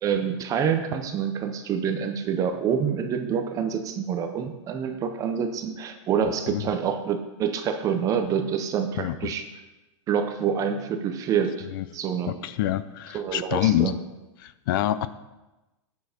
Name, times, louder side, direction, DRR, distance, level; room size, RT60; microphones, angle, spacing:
voice 1, 0.0-9.4 10.1-11.7 11.9-12.3 13.1-13.9, right 7 dB, 20° right, 7 dB, 0.6 m, -27 dB
voice 2, 9.0-9.3 11.7-11.8 12.3-14.0 14.4-15.1, left 13 dB, 45° left, 14 dB, 0.5 m, -26 dB
9.4 x 6.2 x 5.1 m, 1.1 s
supercardioid pair, 155°, 16 cm